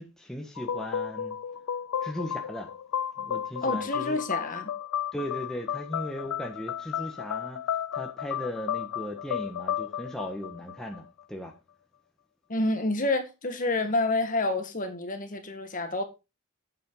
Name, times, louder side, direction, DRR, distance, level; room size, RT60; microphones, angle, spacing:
voice 1, 0.0-1.4 2.0-2.7 3.2-4.2 5.1-7.6 7.9-11.5, equal, ahead, 1.3 m, -37 dB
sound 1, 0.6-11.2, left 9 dB, 80° left, 0.4 m, -33 dB
voice 2, 3.6-4.7 12.5-16.0, left 2 dB, 35° left, 1.7 m, -28 dB
8.7 x 7.7 x 3.8 m
head